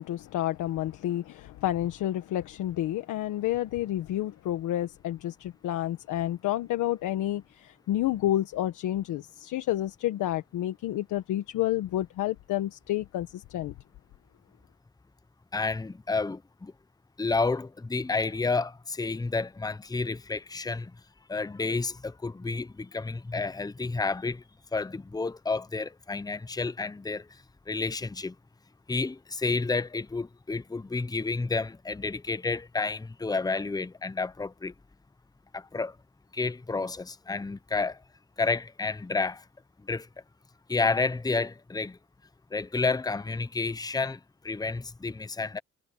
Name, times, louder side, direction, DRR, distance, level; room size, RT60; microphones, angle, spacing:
voice 1, 0.0-13.7, left 13 dB, 85° left, 1.5 m, -30 dB
voice 2, 15.5-16.7 17.2-20.9 21.3-24.4 24.7-27.3 27.7-28.3 28.9-34.7 35.5-36.0 36.3-38.0 38.4-39.4 39.9-40.1 40.7-42.0 42.5-44.2 44.4-45.6, left 3 dB, 15° left, 0.9 m, -30 dB
cardioid pair, 90°, 30 cm